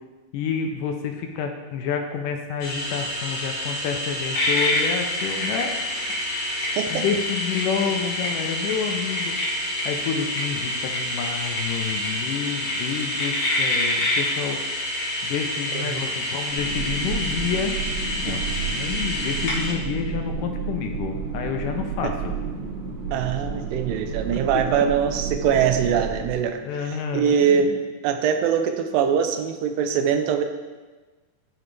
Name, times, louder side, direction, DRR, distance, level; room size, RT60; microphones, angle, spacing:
voice 1, 0.3-5.7 6.9-9.4 9.9-14.6 15.2-17.8 18.2-22.3 24.1-24.2 24.5-24.6 26.6-27.8, left 6 dB, 80° left, 4 dB, 2.1 m, -29 dB
sound 1, 2.6-19.7, left 1 dB, 45° left, 1.7 m, -27 dB
voice 2, 6.6-7.0 15.7-16.0 18.3-18.4 23.1-27.7 28.0-30.4, right 7 dB, 85° right, 7 dB, 2.3 m, -23 dB
sound 2, 16.5-26.3, right 5 dB, 70° right, 2.3 m, -31 dB
12.0 x 4.9 x 3.2 m, 1.3 s
omnidirectional pair, 3.9 m